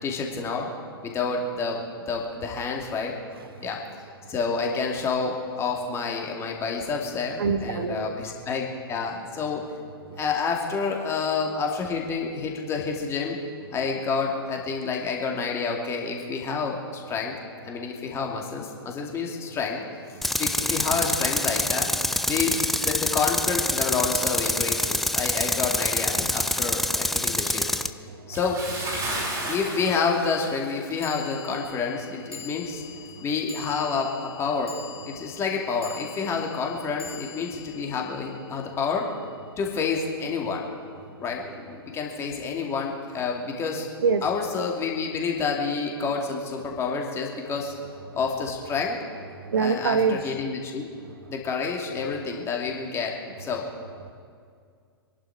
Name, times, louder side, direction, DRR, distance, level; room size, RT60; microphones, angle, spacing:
voice 1, 0.0-0.7 1.0-1.8 2.1-3.2 3.6-3.8 4.3-9.6 10.2-13.4 13.7-17.3 17.6-19.8 20.4-21.9 22.3-27.7 28.3-28.6 29.4-32.8 33.2-34.8 35.1-39.1 39.6-40.6 41.2-43.9 44.2-47.7 48.1-49.0 49.6-50.9 51.3-53.7, left 5 dB, 20° left, 0 dB, 2.5 m, -28 dB
voice 2, 3.3-3.7 7.4-8.1 10.1-10.2 28.1-28.4 29.0-29.5 40.8-40.9 44.0-44.2 47.5-47.6 47.9-48.1 49.4-50.4 54.0-54.1, right 5 dB, 60° right, 11 dB, 1.2 m, -27 dB
Tools, 20.2-27.9, left 1 dB, ahead, 0.3 m, -26 dB
Bathtub (filling or washing) / Splash splatter, 28.3-31.2 31.5-31.7 32.3-32.4, right 1 dB, 20° right, 3.1 m, -33 dB
sound 1, 31.0-39.4, left 7 dB, 75° left, 2.6 m, -45 dB
25.0 x 11.5 x 4.9 m, 2.2 s
figure-of-eight pair, 110°, 13 cm